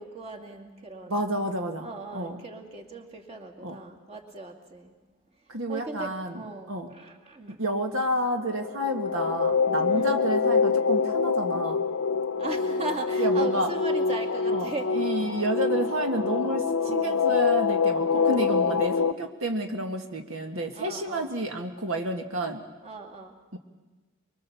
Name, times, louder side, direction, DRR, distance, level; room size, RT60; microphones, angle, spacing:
voice 1, 0.0-1.2 1.8-4.9 5.7-7.6 9.9-10.2 12.4-14.9 15.7-15.8 16.8-17.3 18.1-18.5 20.8-21.3 22.8-23.4, right 2 dB, 30° right, 1 dB, 2.4 m, -38 dB
voice 2, 1.1-2.4 3.6-3.8 5.5-6.4 6.7-6.9 7.6-11.8 13.2-13.7 14.5-22.6 23.5-23.6, right 1 dB, 80° right, 4 dB, 1.8 m, -30 dB
sound 1, 8.5-19.1, left 5 dB, 80° left, 0.7 m, -25 dB
24.0 x 23.5 x 7.1 m, 1.2 s
head